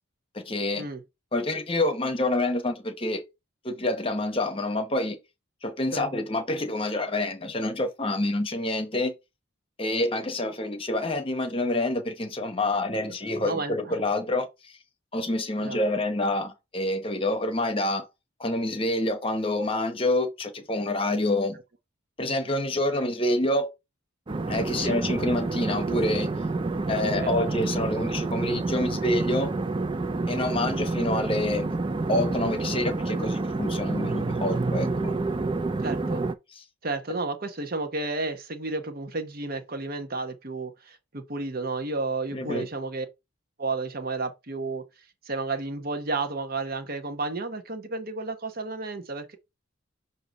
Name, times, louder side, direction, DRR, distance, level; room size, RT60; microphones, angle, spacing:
voice 1, 0.3-0.9 1.3-3.2 3.6-5.2 5.6-9.1 9.8-14.7 15.1-18.1 18.4-21.6 22.2-23.7 24.5-26.3 26.9-29.5 30.3-31.7 32.1-35.2 36.5-36.6 42.3-42.7, left 1 dB, 25° left, 1.0 m, -27 dB
voice 2, 13.4-14.0 15.6-15.8 24.8-25.0 27.2-27.3 35.8-36.2 36.8-43.1 43.6-44.9 45.2-49.4, right 3 dB, 45° right, 1.0 m, -32 dB
sound 1, 24.3-36.3, right 3 dB, 25° right, 0.4 m, -28 dB
6.6 x 2.7 x 5.2 m
head